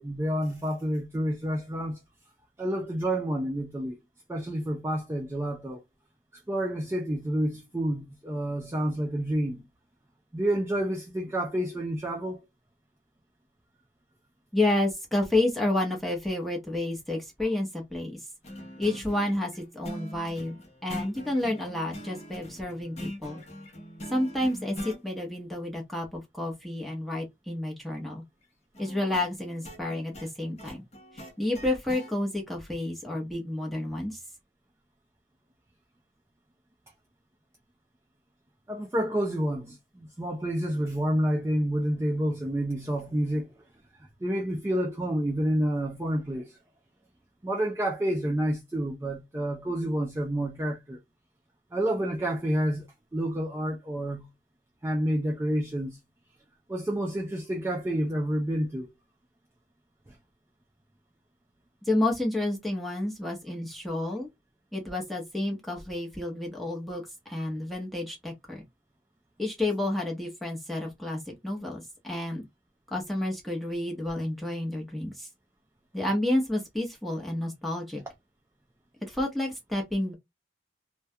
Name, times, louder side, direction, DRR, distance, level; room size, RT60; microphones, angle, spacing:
voice 1, 0.0-2.0 2.6-4.0 4.3-5.8 6.5-9.6 10.3-12.4 38.7-43.5 44.2-46.6 47.4-51.0 51.7-52.9 53.1-54.3 54.8-56.0 56.7-58.9, right 1 dB, 15° right, 0.3 m, -29 dB
voice 2, 14.5-18.2 18.8-23.4 24.1-28.2 28.8-30.8 31.4-34.2 61.9-64.3 64.7-68.6 69.4-72.5 72.9-75.3 75.9-78.0 79.1-80.1, left 1 dB, ahead, 0.8 m, -30 dB
acoustic guitar, 18.4-25.0 28.7-32.1, equal, 35° left, 0.7 m, -42 dB
2.2 x 2.2 x 2.7 m
head